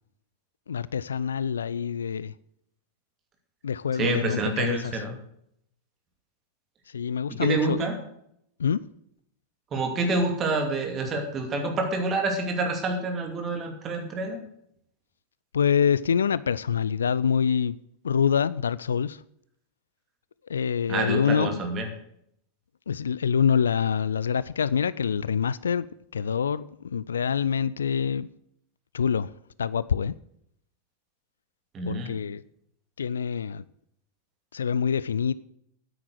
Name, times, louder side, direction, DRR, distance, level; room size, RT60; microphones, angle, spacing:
voice 1, 0.7-2.3 3.6-5.0 6.9-7.9 8.6-8.8 15.5-17.8 18.0-19.2 20.5-21.6 22.9-25.9 26.1-28.3 28.9-29.3 29.6-30.1 31.9-32.4 33.0-33.6 34.5-35.3, left 7 dB, 70° left, 0.4 m, -26 dB
voice 2, 4.0-5.1 7.4-7.9 9.7-14.4 20.9-21.9 31.7-32.2, right 3 dB, 25° right, 2.6 m, -27 dB
9.5 x 8.7 x 7.9 m
figure-of-eight pair, 90°, 0 cm